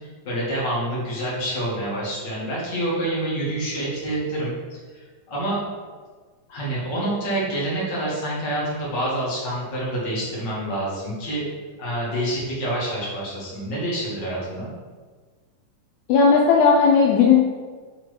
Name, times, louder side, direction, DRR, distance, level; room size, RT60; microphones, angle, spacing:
voice 1, 0.0-5.6 6.5-11.5 11.8-14.7, right 1 dB, 35° left, -7 dB, 2.1 m, -27 dB
voice 2, 16.1-17.4, left 5 dB, 85° left, -1 dB, 1.7 m, -15 dB
6.5 x 3.7 x 4.7 m, 1.5 s
omnidirectional pair, 4.1 m